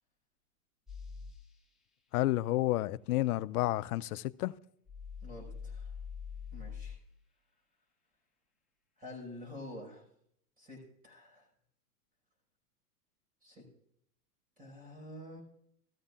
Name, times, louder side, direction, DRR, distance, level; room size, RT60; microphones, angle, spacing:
sound 1, 0.9-1.4 4.9-7.0, left 6 dB, ahead, 1.6 m, -44 dB
voice 1, 2.1-4.5, left 16 dB, 70° left, 0.6 m, -30 dB
voice 2, 5.2-5.9 6.5-7.0 9.0-10.0 10.6-11.5 13.4-13.6 14.6-15.4, left 1 dB, 20° right, 5.6 m, -48 dB
14.5 x 14.0 x 2.5 m
hypercardioid pair, 125°, 46 cm